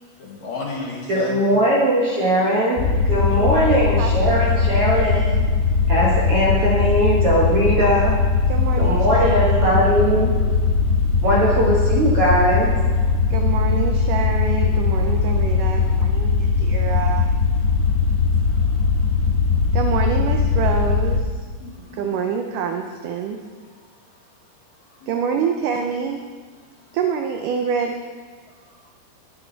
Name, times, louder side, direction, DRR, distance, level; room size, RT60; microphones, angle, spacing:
voice 1, 0.2-1.4 18.5-18.8 19.5-19.6 21.6-22.2 25.0-25.2, left 2 dB, 60° left, -2 dB, 2.2 m, -33 dB
voice 2, 1.1-5.2 5.9-8.2 8.8-10.3 11.2-12.7, right 1 dB, 60° right, -5 dB, 1.5 m, -20 dB
sound 1, 2.8-21.2, left 4 dB, 80° left, 3.4 m, -19 dB
voice 3, 3.3-5.5 8.5-10.0 13.3-17.3 19.7-21.3 21.9-23.4 25.1-26.2 26.9-28.0, right 6 dB, 85° right, 4 dB, 1.8 m, -27 dB
20.0 x 7.0 x 4.0 m, 1.5 s
omnidirectional pair, 4.5 m